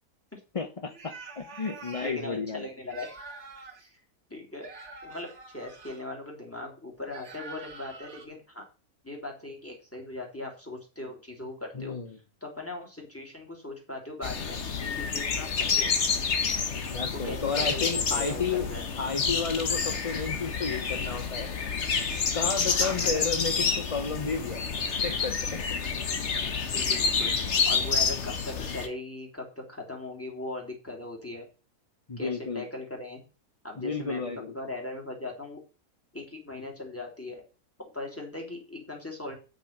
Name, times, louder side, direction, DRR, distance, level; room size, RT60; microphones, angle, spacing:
voice 1, 0.5-2.7 11.8-12.1 16.9-18.6 19.0-21.5 22.3-24.6 25.0-25.7 32.1-32.6 33.8-34.5, left 5 dB, 30° left, 6 dB, 0.7 m, -32 dB
sound 1, 0.9-2.2 2.8-3.9 4.6-6.0 7.1-8.3, right 3 dB, 50° right, 2.2 m, -45 dB
voice 2, 2.0-3.2 3.8-3.9 4.3-4.7 5.0-8.7 9.0-12.0 12.4-15.9 17.2-18.9 22.7-23.2 26.7-27.3 27.6-31.4 32.2-33.2 33.6-35.6 36.1-37.4 37.9-39.4, left 2 dB, 10° left, 0 dB, 3.3 m, -39 dB
sound 2, 14.2-28.9, left 5 dB, 50° left, 1.5 m, -29 dB
8.9 x 6.7 x 5.9 m, 0.33 s
omnidirectional pair, 1.6 m